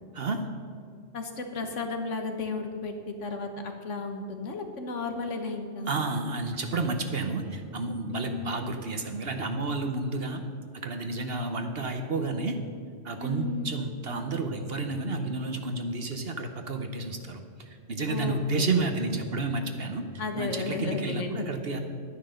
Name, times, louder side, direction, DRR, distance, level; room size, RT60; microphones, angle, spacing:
voice 1, 0.1-0.5 5.9-10.4 10.7-12.6 13.0-20.1 20.4-21.8, right 3 dB, 55° right, 6 dB, 1.1 m, -31 dB
voice 2, 1.1-5.9 8.1-8.6 10.0-10.1 13.2-13.7 18.1-18.4 20.2-21.4, left 3 dB, 75° left, 5 dB, 1.6 m, -33 dB
11.0 x 9.9 x 6.5 m, 2.4 s
omnidirectional pair, 1.3 m